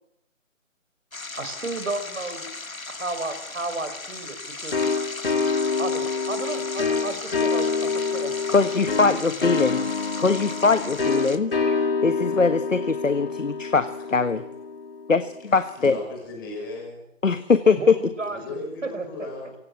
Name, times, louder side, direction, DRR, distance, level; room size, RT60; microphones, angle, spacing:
sound 1, 1.1-11.4, left 3 dB, 90° left, 2.3 m, -37 dB
voice 1, 1.4-2.5 2.9-4.8 5.8-8.3 9.0-9.5 17.8-19.1, right 2 dB, 65° right, 10 dB, 5.1 m, -33 dB
sound 2, 4.7-15.2, left 4 dB, 45° left, 3.1 m, -27 dB
voice 2, 8.5-9.9 10.2-11.5 12.0-14.4 15.1-15.9 17.2-17.3 17.7-17.8, left 4 dB, 70° left, 10 dB, 1.6 m, -22 dB
voice 3, 15.7-17.1 18.3-19.6, left 2 dB, 15° left, 1 dB, 6.3 m, -36 dB
24.0 x 17.5 x 8.4 m, 0.86 s
figure-of-eight pair, 165°, 40 cm